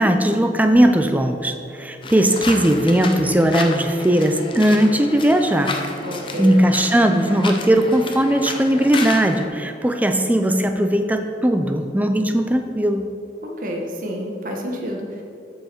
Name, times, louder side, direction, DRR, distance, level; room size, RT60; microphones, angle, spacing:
voice 1, 0.0-5.7 6.4-13.1, right 1 dB, 10° right, 6 dB, 0.5 m, -18 dB
sound 1, 2.0-9.5, left 3 dB, 30° left, 0.7 m, -32 dB
voice 2, 6.0-6.6 13.4-15.2, equal, 45° right, 0 dB, 1.3 m, -29 dB
13.0 x 5.6 x 4.5 m, 2.6 s
head